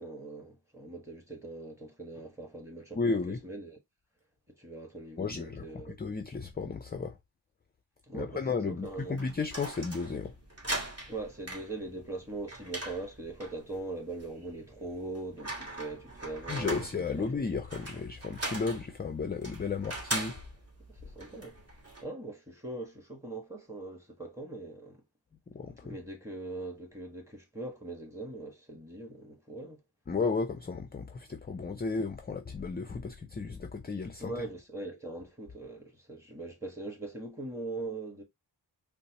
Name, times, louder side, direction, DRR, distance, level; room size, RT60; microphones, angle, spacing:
voice 1, 0.0-3.0 3.3-3.8 4.5-6.0 8.1-9.2 11.1-16.9 17.1-17.3 21.0-21.6 22.0-25.0 25.8-29.8 34.2-38.2, right 2 dB, 5° right, 1.2 m, -41 dB
voice 2, 3.0-3.4 5.2-7.2 8.1-10.3 16.5-20.4 25.5-26.0 30.1-34.3, left 4 dB, 25° left, 0.3 m, -34 dB
sound 1, 8.8-22.0, right 1 dB, 30° right, 1.4 m, -41 dB
4.0 x 2.0 x 2.8 m
wide cardioid pair, 70°, 47 cm